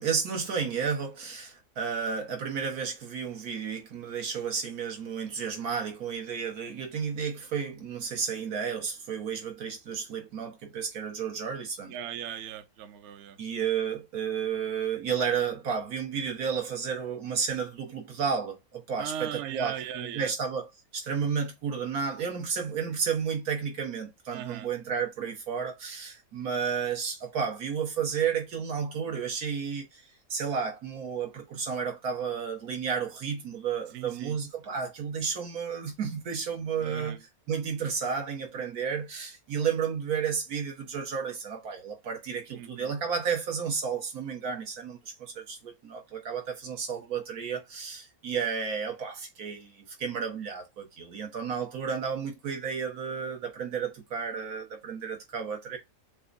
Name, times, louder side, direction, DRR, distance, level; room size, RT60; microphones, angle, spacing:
voice 1, 0.0-12.0 13.4-30.0 30.3-37.2 37.5-55.8, right 6 dB, 90° right, 1.7 m, -32 dB
voice 2, 11.9-13.4 19.0-20.3 24.3-24.7 33.9-34.4 36.8-37.2 42.5-42.9, right 10 dB, 60° right, 0.8 m, -38 dB
6.5 x 2.3 x 2.5 m
omnidirectional pair, 1.5 m